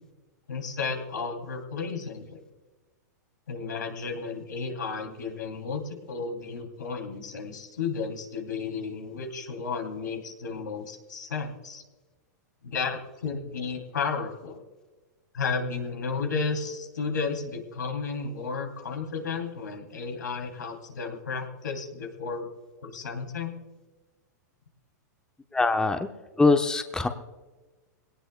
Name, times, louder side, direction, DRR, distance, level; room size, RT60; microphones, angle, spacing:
voice 1, 0.5-2.4 3.5-11.8 12.6-14.6 15.3-22.5 22.8-23.5, left 5 dB, 85° left, 4 dB, 2.9 m, -33 dB
voice 2, 25.5-26.1 26.4-27.1, left 3 dB, 5° left, 7 dB, 0.9 m, -22 dB
22.0 x 18.0 x 2.3 m, 1.2 s
hypercardioid pair, 120°, 10 cm